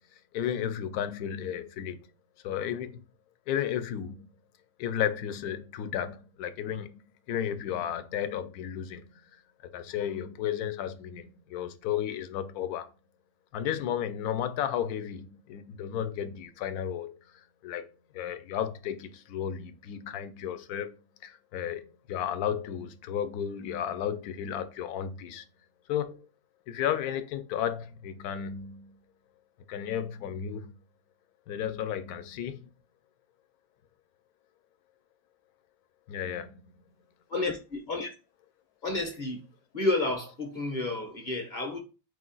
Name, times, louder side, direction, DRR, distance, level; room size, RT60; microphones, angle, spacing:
voice 1, 0.3-2.0 2.4-3.0 3.5-4.3 4.8-7.0 7.3-9.1 9.6-12.9 13.5-20.9 21.2-25.4 25.9-26.3 26.7-29.0 29.7-30.7 31.5-32.7 36.1-36.7, left 9 dB, 80° left, 1.1 m, -33 dB
voice 2, 38.8-39.4 39.7-41.8, left 2 dB, 45° left, 0.7 m, -30 dB
4.8 x 2.3 x 3.8 m
omnidirectional pair, 1.6 m